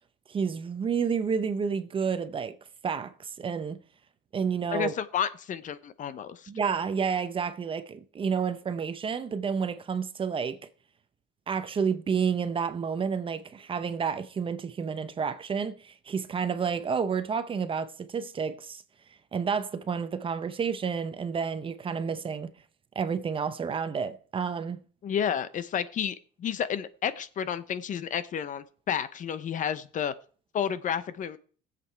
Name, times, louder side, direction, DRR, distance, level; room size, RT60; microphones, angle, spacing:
voice 1, 0.3-2.6 2.8-3.8 4.3-4.9 6.5-10.6 11.5-18.8 19.3-22.5 22.9-24.8, right 6 dB, 25° right, 0.8 m, -30 dB
voice 2, 4.7-6.5 25.0-30.1 30.5-31.4, left 8 dB, 40° left, 0.8 m, -31 dB
19.0 x 7.7 x 4.6 m
cardioid pair, 145°, 20 cm